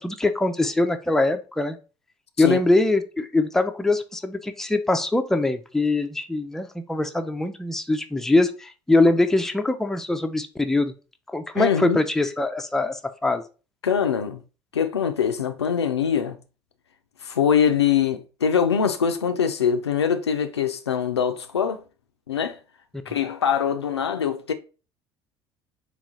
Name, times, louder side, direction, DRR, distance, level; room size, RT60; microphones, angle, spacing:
voice 1, 0.0-1.8 2.4-10.9 11.3-13.4, left 2 dB, 5° left, 0.4 m, -23 dB
voice 2, 11.5-12.0 13.8-14.4 14.7-16.4 17.2-21.8 22.3-22.6 23.1-24.5, left 7 dB, 80° left, 0.4 m, -23 dB
3.9 x 2.3 x 3.6 m
figure-of-eight pair, 60°, 14 cm